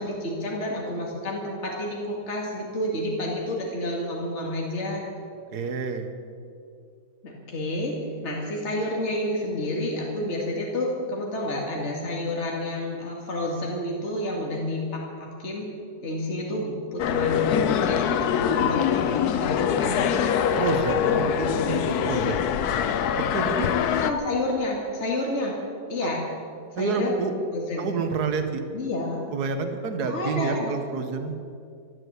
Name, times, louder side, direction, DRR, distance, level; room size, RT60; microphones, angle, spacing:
voice 1, 0.0-5.1 7.2-7.9 8.2-15.7 16.0-20.2 24.0-25.6 25.9-26.2 26.7-27.1 27.5-27.9 28.7-29.2 30.0-30.7, left 1 dB, 40° left, -2 dB, 2.5 m, -29 dB
voice 2, 5.5-6.1 20.6-22.4 23.1-23.7 26.0-26.1 26.8-27.3 27.8-28.6 29.3-31.3, right 5 dB, 65° right, 7 dB, 1.7 m, -28 dB
sound 1, 17.0-24.1, left 8 dB, 70° left, 1.2 m, -24 dB
13.5 x 12.5 x 8.2 m, 2.3 s
omnidirectional pair, 1.8 m